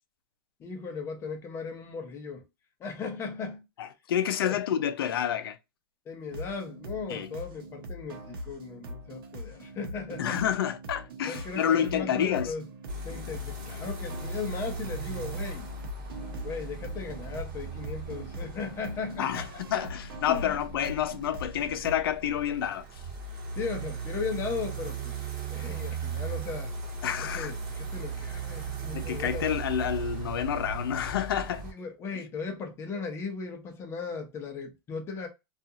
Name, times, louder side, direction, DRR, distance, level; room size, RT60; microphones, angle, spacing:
voice 1, 0.6-2.4 2.8-3.6 4.4-4.6 6.1-10.4 11.2-12.6 13.0-15.7 16.4-19.6 20.3-20.5 23.6-26.7 27.2-29.5 31.6-35.3, left 5 dB, 20° left, 0.7 m, -37 dB
voice 2, 3.8-5.6 7.1-7.3 10.2-12.5 19.2-22.8 27.0-27.5 28.9-31.6, left 9 dB, 80° left, 0.5 m, -29 dB
sound 1, 6.3-22.0, right 1 dB, 75° right, 0.8 m, -42 dB
sound 2, 12.9-31.7, right 5 dB, 35° right, 1.1 m, -38 dB
2.5 x 2.4 x 2.7 m
supercardioid pair, 150°, 12 cm